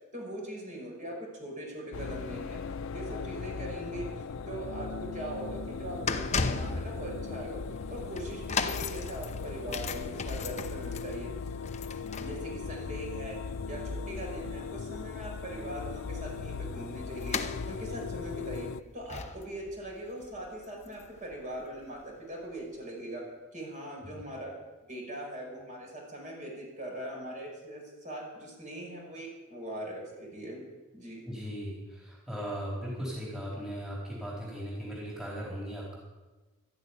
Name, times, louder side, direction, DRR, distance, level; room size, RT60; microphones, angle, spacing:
voice 1, 0.1-2.6 2.9-7.6 7.9-11.3 12.2-13.4 13.7-17.4 17.7-18.7 18.9-24.5 24.9-30.6 30.9-31.2, right 1 dB, 40° right, -1 dB, 5.4 m, -41 dB
sound 1, 1.9-18.8, left 5 dB, 75° left, 0.5 m, -38 dB
sound 2, 5.0-21.3 21.6-21.8 22.6-22.7, left 4 dB, 35° left, 0.8 m, -38 dB
voice 2, 31.2-36.0, equal, 5° right, -6 dB, 3.9 m, -38 dB
13.0 x 10.5 x 9.7 m, 1.2 s
head